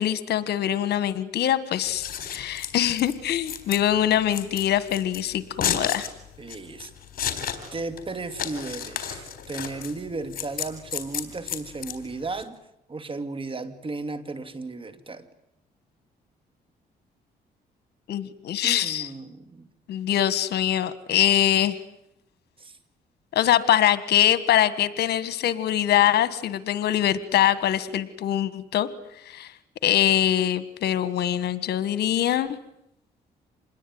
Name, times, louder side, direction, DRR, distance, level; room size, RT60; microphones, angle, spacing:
voice 1, 0.0-6.1 18.1-19.1 19.9-21.8 23.3-28.9 29.3-29.5 29.8-32.6, left 11 dB, 75° left, 15 dB, 1.7 m, -23 dB
Scissors, 1.8-12.4, left 8 dB, 60° left, 3.9 m, -33 dB
voice 2, 6.4-6.9 7.7-12.6 12.9-15.3 18.6-19.7 22.6-22.8, right 3 dB, 30° right, 12 dB, 2.6 m, -35 dB
27.0 x 21.0 x 9.6 m, 0.79 s
cardioid pair, 85°, 17 cm